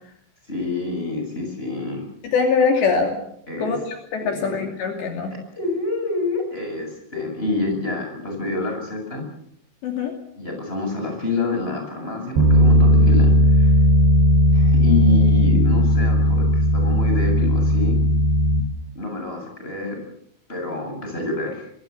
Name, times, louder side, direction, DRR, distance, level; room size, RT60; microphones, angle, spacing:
voice 1, 0.5-2.0 3.5-3.8 4.2-4.6 5.6-9.2 10.4-13.7 14.5-18.0 18.9-20.0 20.5-21.7, left 2 dB, 10° left, 3 dB, 7.7 m, -27 dB
voice 2, 2.3-3.2 3.6-5.3 7.1-7.3 9.8-10.1, left 5 dB, 65° left, 3 dB, 4.8 m, -22 dB
Bass guitar, 12.4-18.6, equal, 60° right, 6.2 m, -16 dB
25.0 x 23.5 x 7.2 m, 0.71 s
omnidirectional pair, 5.6 m